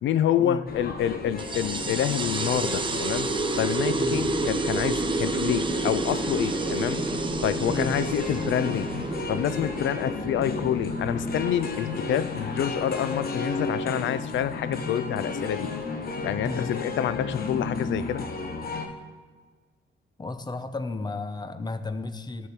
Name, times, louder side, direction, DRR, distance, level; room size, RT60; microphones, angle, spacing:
voice 1, 0.0-3.3 3.6-7.0 7.4-8.9 9.3-15.7 16.2-18.2, left 10 dB, 70° left, 14 dB, 0.5 m, -27 dB
sound 1, 0.7-18.9, left 3 dB, 50° left, 1.2 m, -33 dB
sound 2, 1.4-12.4, right 3 dB, 25° right, 0.7 m, -30 dB
voice 2, 3.9-4.3 7.7-8.0 16.4-16.7 20.2-22.5, left 3 dB, 20° left, 10 dB, 0.7 m, -33 dB
13.0 x 6.5 x 4.4 m, 1.5 s
cardioid pair, 90°, 20 cm